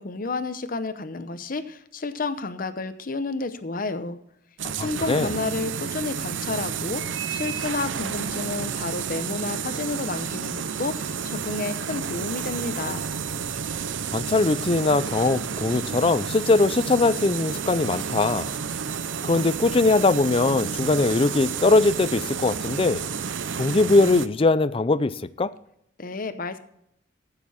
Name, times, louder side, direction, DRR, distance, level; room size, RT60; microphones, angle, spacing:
voice 1, 0.0-4.2 4.8-13.0 26.0-26.6, left 3 dB, 50° left, 11 dB, 0.8 m, -31 dB
sound 1, 4.6-24.3, right 7 dB, 85° right, 0.6 m, -31 dB
voice 2, 4.8-5.3 14.1-18.5 19.2-23.0 23.5-25.5, left 3 dB, 30° left, 16 dB, 0.4 m, -21 dB
15.5 x 6.8 x 4.3 m, 0.74 s
head